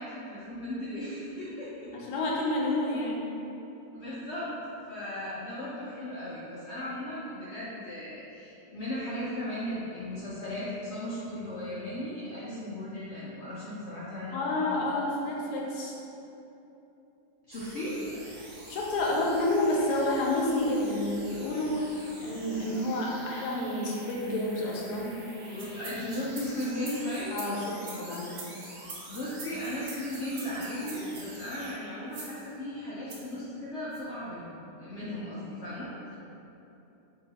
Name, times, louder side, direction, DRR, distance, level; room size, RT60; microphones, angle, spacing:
voice 1, 0.0-1.9 3.9-4.5 4.9-14.6 17.5-18.0 25.5-27.4 29.1-36.1, left 1 dB, 70° left, -9 dB, 0.6 m, -36 dB
voice 2, 1.9-3.3 14.3-15.9 18.7-25.1 27.3-28.3, left 1 dB, 85° left, -2 dB, 1.2 m, -29 dB
sound 1, 17.5-31.7, right 1 dB, 85° right, 1.4 m, -47 dB
sound 2, 25.4-31.3 32.1-32.4 33.1-33.3 33.9-34.0, right 3 dB, 65° right, 1.0 m, -44 dB
3.0 x 2.8 x 4.0 m, 2.9 s
omnidirectional pair, 1.7 m